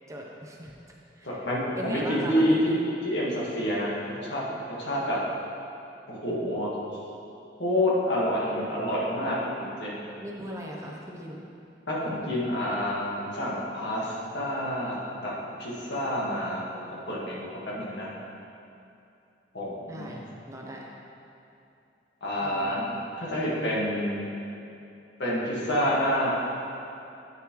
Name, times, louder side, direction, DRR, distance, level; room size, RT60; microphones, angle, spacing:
voice 1, 0.1-0.7 1.2-1.5 1.8-2.8 10.2-11.4 19.9-20.9 22.4-22.8, equal, 15° right, -1 dB, 0.6 m, -38 dB
voice 2, 1.2-2.8 3.0-4.4 4.7-5.2 6.1-6.7 7.6-9.9 11.9-15.3 15.6-18.1 19.5-20.2 22.2-24.2 25.2-26.3, equal, 75° left, -5 dB, 1.6 m, -28 dB
9.0 x 6.8 x 3.1 m, 2.7 s
head